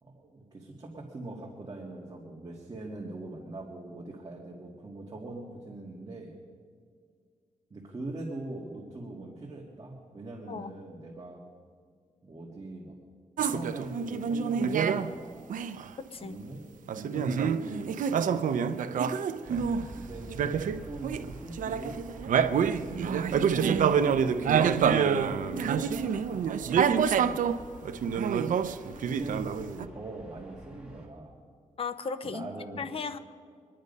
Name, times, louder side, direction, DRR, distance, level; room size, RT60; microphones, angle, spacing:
voice 1, 0.0-6.4 7.7-11.4 12.2-13.0 13.4-15.5 16.2-16.7 16.9-19.2 19.9-22.1 22.8-24.3 25.3-27.5 29.0-31.4 32.2-32.9, right 2 dB, 30° right, -2 dB, 1.9 m, -42 dB
sound 1, 13.4-15.1 15.5-15.8 16.9-19.8 20.3-21.3 21.6-27.6 27.8-29.9, right 7 dB, 80° right, 0.6 m, -27 dB
voice 2, 16.0-16.4 31.8-33.2, left 5 dB, 45° left, 11 dB, 0.8 m, -36 dB
Aircraft, 19.4-31.1, right 2 dB, 10° right, 2.4 m, -48 dB
24.5 x 10.5 x 5.4 m, 2.1 s
wide cardioid pair, 120°, 13 cm